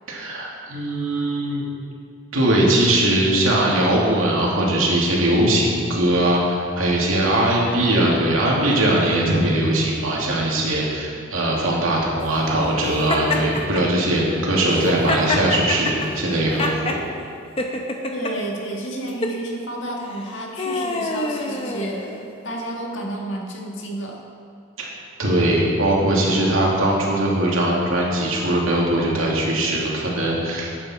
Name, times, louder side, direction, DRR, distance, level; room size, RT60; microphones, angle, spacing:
voice 1, 0.1-1.6 2.3-17.0 24.8-24.9 25.2-30.7, right 1 dB, 90° right, -3 dB, 2.6 m, -20 dB
Laughter, 13.1-13.8 14.6-17.0 17.6-18.3 19.1-19.4 20.1-22.3, left 2 dB, 30° left, 0.9 m, -26 dB
voice 2, 18.1-24.2, right 1 dB, 65° left, -1 dB, 1.9 m, -31 dB
14.0 x 8.8 x 4.4 m, 2.4 s
head